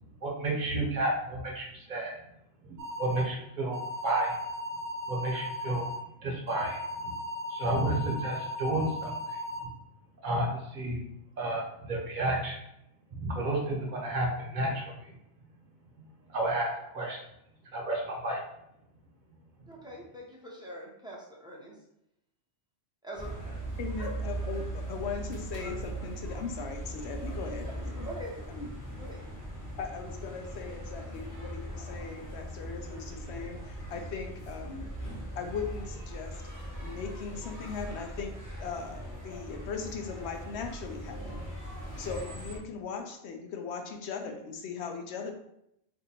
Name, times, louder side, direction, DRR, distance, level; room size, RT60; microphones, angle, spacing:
voice 1, 0.2-2.2 2.7-4.4 5.1-5.9 6.2-7.1 7.5-9.7 10.2-11.1 11.4-12.6 13.1-15.1 16.3-17.2 17.7-18.4, right 1 dB, 45° right, -1 dB, 0.9 m, -31 dB
sound 1, 2.8-3.2 3.7-6.0 6.5-9.6, left 1 dB, 85° right, 0.9 m, -37 dB
voice 2, 19.7-21.8 23.0-23.3 24.0-24.1 28.0-28.3 29.0-29.2, right 1 dB, 5° right, -4 dB, 0.5 m, -43 dB
sound 2, 23.1-42.6, right 1 dB, 20° left, 1.0 m, -40 dB
voice 3, 23.8-28.1 28.5-28.7 29.8-34.9 35.4-36.3 36.8-38.3 38.6-41.4 42.0-45.3, left 5 dB, 75° left, 5 dB, 0.8 m, -39 dB
2.6 x 2.6 x 4.2 m, 0.77 s
omnidirectional pair, 1.2 m